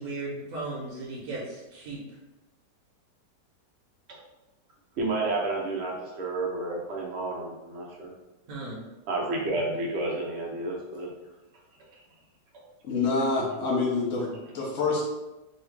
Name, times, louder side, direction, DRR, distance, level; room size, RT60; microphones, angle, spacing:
voice 1, 0.0-2.0 8.5-8.8, right 2 dB, 60° right, -4 dB, 1.0 m, -36 dB
voice 2, 5.0-8.1 9.1-11.1 12.5-12.6, right 2 dB, 80° right, -1 dB, 0.6 m, -31 dB
voice 3, 12.8-15.1, left 3 dB, 60° left, -3 dB, 0.8 m, -27 dB
3.1 x 2.3 x 3.2 m, 1.0 s
omnidirectional pair, 1.8 m